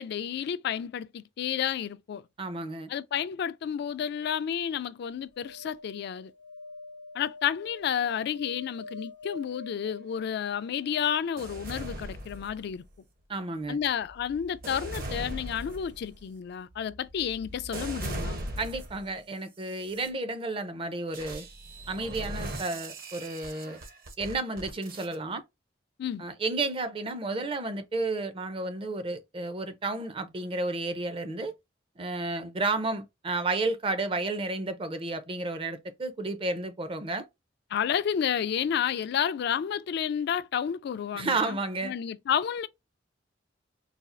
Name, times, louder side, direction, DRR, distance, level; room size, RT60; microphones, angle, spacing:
voice 1, 0.0-2.2 2.9-6.3 7.1-12.8 13.7-18.4 26.0-26.2 37.7-42.7, left 8 dB, 60° left, 0.3 m, -31 dB
voice 2, 2.4-2.9 13.3-13.8 18.6-21.5 21.9-23.8 24.2-25.4 26.2-31.5 32.0-37.3 41.1-42.0, right 3 dB, 30° right, 0.5 m, -32 dB
sound 1, 5.3-11.5 13.8-13.9 14.0-14.1, left 3 dB, 85° left, 0.8 m, -46 dB
sound 2, 11.4-12.9 13.6-19.1 19.7-20.1 21.1-25.2, right 1 dB, 50° right, 0.8 m, -39 dB
4.1 x 2.3 x 2.5 m
head